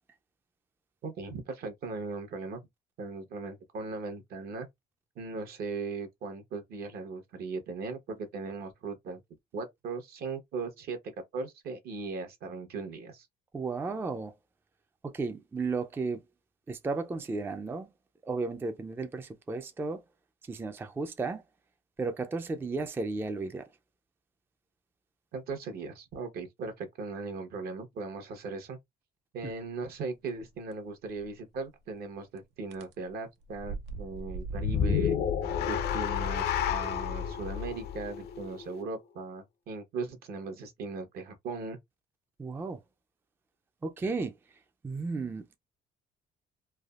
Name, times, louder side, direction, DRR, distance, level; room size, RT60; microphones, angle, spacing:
voice 1, 1.0-2.6 3.0-4.7 5.2-9.2 9.5-11.0 11.3-13.3 25.3-28.8 29.3-35.2 35.6-41.8, right 4 dB, 65° right, 0.9 m, -38 dB
voice 2, 13.5-14.3 15.0-16.2 16.7-17.9 18.2-20.0 20.5-21.4 22.0-23.7 29.4-29.5 42.4-42.8 43.8-44.3 44.8-45.6, right 3 dB, 15° right, 0.3 m, -34 dB
sound 1, 31.2-31.3 32.7-32.9 33.4-35.0, right 3 dB, 80° right, 0.6 m, -39 dB
sound 2, 34.5-38.9, left 8 dB, 70° left, 0.5 m, -30 dB
3.3 x 2.0 x 2.3 m
cardioid pair, 110°, 17 cm